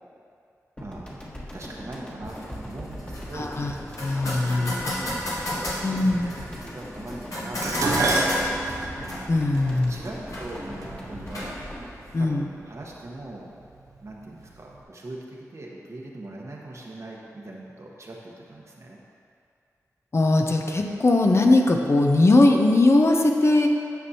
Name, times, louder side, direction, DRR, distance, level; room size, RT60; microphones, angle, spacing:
sound 1, 0.8-13.2, equal, 20° left, 1.4 m, -40 dB
voice 1, 0.8-1.1 1.5-3.5 4.1-8.6 9.6-11.6 12.2-13.5 14.0-19.0, right 2 dB, 55° right, -2 dB, 1.1 m, -41 dB
sound 2, 2.2-12.3, left 1 dB, 70° left, 1.7 m, -35 dB
voice 2, 3.3-3.7 4.0-4.7 5.8-6.3 9.3-10.0 12.1-12.5 20.1-23.7, left 2 dB, 50° left, 2 dB, 0.7 m, -20 dB
Dishes pots and pans, 7.6-12.0 12.9-13.3 13.6-14.5 14.7-14.8, right 2 dB, 75° right, 0.8 m, -29 dB
9.3 x 6.1 x 2.8 m, 2.4 s
cardioid pair, 50°, 6 cm